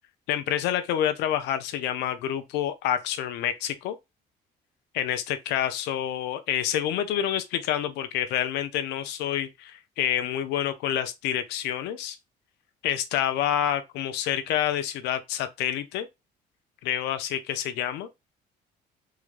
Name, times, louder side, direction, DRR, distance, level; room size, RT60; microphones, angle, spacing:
voice 1, 0.3-4.0 4.9-12.2 12.8-16.1 16.8-18.1, left 10 dB, 85° left, 0.6 m, -28 dB
3.6 x 2.2 x 3.1 m
cardioid pair, 110°, 17 cm